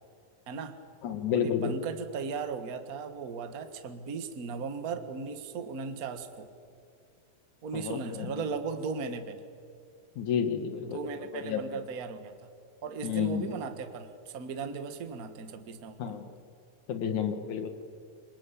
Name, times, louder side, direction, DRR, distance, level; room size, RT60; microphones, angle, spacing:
voice 1, 0.5-0.8 1.3-6.5 7.6-9.4 10.8-12.3 12.8-16.3, right 5 dB, 45° right, 9 dB, 1.2 m, -37 dB
voice 2, 1.0-1.8 7.7-8.4 10.2-11.8 13.0-13.5 16.0-16.3 16.9-17.7, left 8 dB, 65° left, 8 dB, 2.7 m, -31 dB
27.0 x 24.0 x 8.4 m, 2.3 s
omnidirectional pair, 3.9 m